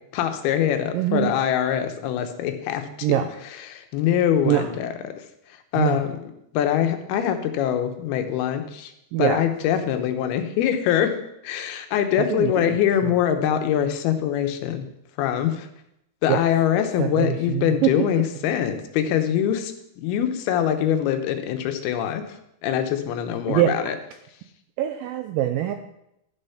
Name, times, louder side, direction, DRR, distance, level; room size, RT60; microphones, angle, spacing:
voice 1, 0.1-2.9 3.7-4.9 5.7-6.2 6.5-8.9 9.2-11.2 11.4-14.8 15.2-15.7 16.2-19.7 20.0-22.2 22.6-23.9, left 10 dB, 80° left, 7 dB, 2.8 m, -23 dB
voice 2, 0.9-1.3 3.0-3.3 4.5-4.7 5.8-6.0 9.1-9.4 12.2-13.2 16.3-16.4 17.0-18.1 23.5-23.9 24.8-25.7, right 13 dB, 85° right, 7 dB, 2.1 m, -24 dB
12.0 x 6.8 x 5.7 m, 0.81 s
omnidirectional pair, 4.6 m